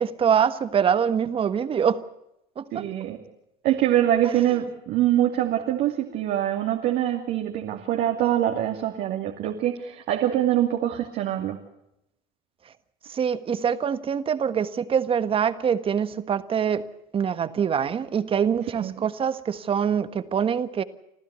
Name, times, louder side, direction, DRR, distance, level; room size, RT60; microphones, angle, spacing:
voice 1, 0.0-2.0 2.6-2.9 13.1-16.8 17.1-20.8, right 7 dB, 30° right, 12 dB, 1.5 m, -24 dB
voice 2, 2.7-3.2 3.6-11.6 18.8-18.9, right 12 dB, 55° right, 2 dB, 2.7 m, -24 dB
26.5 x 14.5 x 8.3 m, 0.84 s
supercardioid pair, 105°, 18 cm